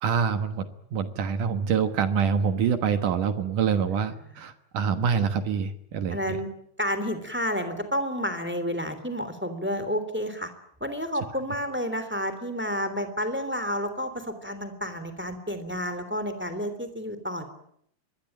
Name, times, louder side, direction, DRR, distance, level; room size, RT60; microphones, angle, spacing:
voice 1, 0.0-6.4, right 6 dB, 65° right, 9 dB, 2.6 m, -26 dB
voice 2, 6.1-6.5 6.8-10.5 10.8-17.4, equal, 5° right, 10 dB, 2.5 m, -30 dB
25.0 x 21.5 x 9.0 m, 0.70 s
omnidirectional pair, 4.5 m